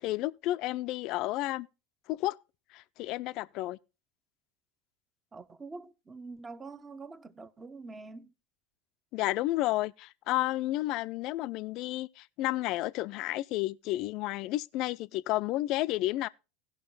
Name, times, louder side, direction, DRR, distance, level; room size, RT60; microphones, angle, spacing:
voice 1, 0.0-1.7 2.1-2.4 2.7-3.8 9.1-16.3, left 17 dB, 55° left, 0.4 m, -31 dB
voice 2, 5.3-8.3, right 3 dB, 20° right, 0.9 m, -45 dB
17.0 x 5.9 x 3.9 m
hypercardioid pair, 90°, 0 cm